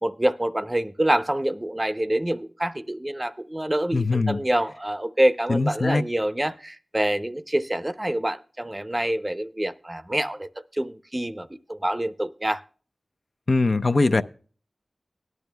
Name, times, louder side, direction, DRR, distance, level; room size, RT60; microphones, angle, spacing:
voice 1, 0.0-12.6, right 1 dB, 20° right, 12 dB, 0.6 m, -26 dB
voice 2, 3.9-4.4 5.5-6.0 13.5-14.2, left 3 dB, 60° left, 10 dB, 0.5 m, -21 dB
18.0 x 10.5 x 2.2 m, 0.40 s
wide cardioid pair, 55°, 0 cm